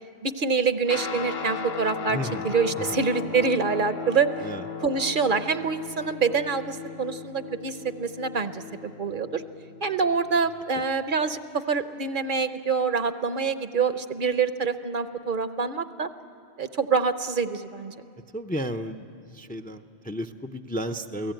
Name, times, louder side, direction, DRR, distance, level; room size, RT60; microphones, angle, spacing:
voice 1, 0.2-2.2 2.4-4.5 4.8-9.4 9.8-16.1 16.6-17.9, right 5 dB, 55° right, 11 dB, 0.9 m, -26 dB
Guitar, 0.9-10.5, left 6 dB, 70° left, 1.2 m, -37 dB
voice 2, 2.1-2.4 2.8-2.9 4.4-4.6 18.3-19.1 19.3-21.3, equal, 10° left, 8 dB, 0.5 m, -33 dB
28.5 x 17.5 x 9.1 m, 2.5 s
omnidirectional pair, 1.1 m